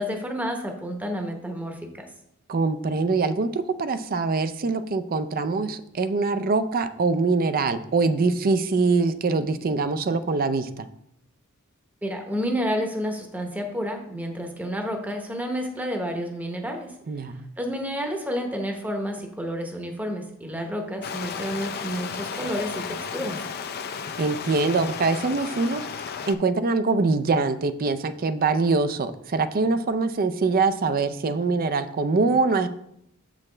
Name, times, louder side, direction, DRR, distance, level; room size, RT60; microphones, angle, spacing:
voice 1, 0.0-2.1 12.0-16.9 17.6-23.4, equal, 10° right, 3 dB, 0.9 m, -30 dB
voice 2, 2.5-10.9 17.1-17.5 24.2-25.9 26.3-32.7, right 3 dB, 40° right, 11 dB, 0.4 m, -23 dB
Stream, 21.0-26.3, left 6 dB, 45° left, 0.5 m, -34 dB
7.3 x 6.2 x 3.3 m, 0.76 s
head